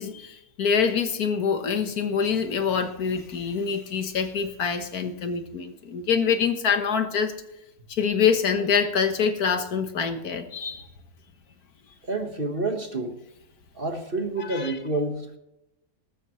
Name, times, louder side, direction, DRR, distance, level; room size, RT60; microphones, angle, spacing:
voice 1, 0.0-7.3 7.9-10.9 14.4-14.8, left 6 dB, 80° left, 8 dB, 1.8 m, -25 dB
voice 2, 12.1-13.2 13.7-15.4, right 2 dB, 40° right, 5 dB, 1.7 m, -28 dB
20.0 x 12.5 x 3.2 m, 0.86 s
omnidirectional pair, 1.6 m